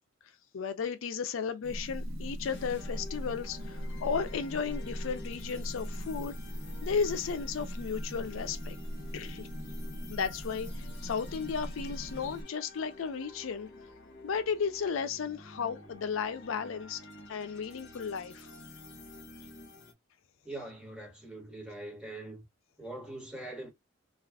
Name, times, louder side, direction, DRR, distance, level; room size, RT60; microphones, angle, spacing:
voice 1, 0.5-6.4 6.8-8.8 9.1-9.5 10.1-13.7 14.2-17.0 17.3-18.5, left 6 dB, 85° left, 0.4 m, -34 dB
sound 1, 1.6-12.4, equal, 75° right, 1.0 m, -40 dB
sound 2, 2.4-19.9, left 2 dB, 65° left, 0.9 m, -50 dB
voice 2, 20.4-22.4 22.8-23.7, right 2 dB, 5° right, 1.3 m, -42 dB
2.4 x 2.4 x 3.3 m
head